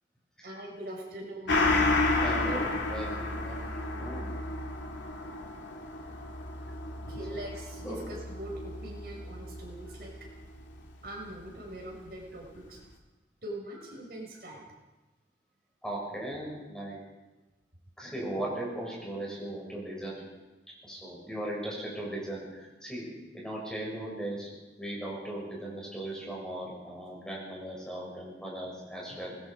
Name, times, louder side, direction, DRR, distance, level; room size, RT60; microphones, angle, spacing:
voice 1, 0.4-1.6 2.8-2.9 7.1-10.3 11.0-12.8 13.4-14.6, right 1 dB, 55° right, -1 dB, 6.5 m, -42 dB
Gong, 1.5-10.4 10.8-10.9, left 2 dB, 85° left, 2.9 m, -31 dB
voice 2, 2.2-4.4 7.8-8.0 15.8-17.0 18.0-20.2 20.8-24.5 24.8-29.4, right 1 dB, 5° left, -4 dB, 6.7 m, -38 dB
25.0 x 20.5 x 5.2 m, 1.1 s
head